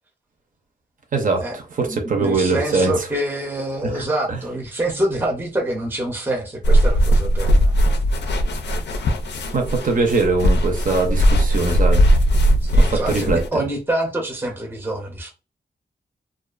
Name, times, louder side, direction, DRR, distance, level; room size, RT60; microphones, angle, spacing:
voice 1, 1.1-2.9 3.8-4.4 9.5-12.1 12.8-13.4, right 3 dB, 50° right, 0.7 m, -22 dB
voice 2, 1.8-7.7 12.6-15.3, right 1 dB, 10° right, 0.5 m, -26 dB
sound 1, 6.6-13.5, equal, 85° left, 0.4 m, -18 dB
2.4 x 2.4 x 2.3 m
wide cardioid pair, 110°, 17 cm